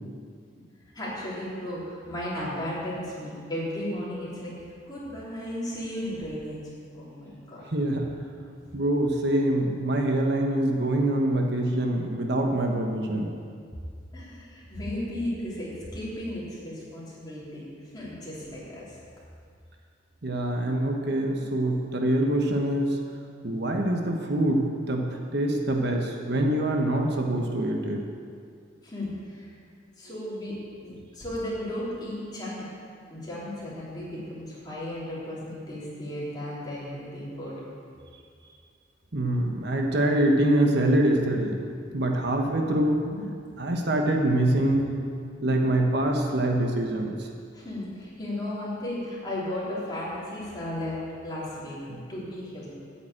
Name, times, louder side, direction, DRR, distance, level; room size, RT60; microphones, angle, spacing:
voice 1, 0.9-6.6 6.9-7.6 14.1-17.6 17.9-18.9 28.8-29.5 30.0-30.6 30.8-32.7 33.1-37.5 42.9-43.2 47.5-51.8 52.1-52.8, left 1 dB, 20° left, -8 dB, 3.4 m, -35 dB
voice 2, 7.7-8.0 8.7-13.3 20.2-23.0 23.4-28.0 39.1-41.6 41.9-43.0 43.6-44.9 45.4-47.2 51.9-52.0, right 1 dB, 65° right, 2 dB, 1.1 m, -25 dB
8.9 x 7.3 x 8.6 m, 2.3 s
head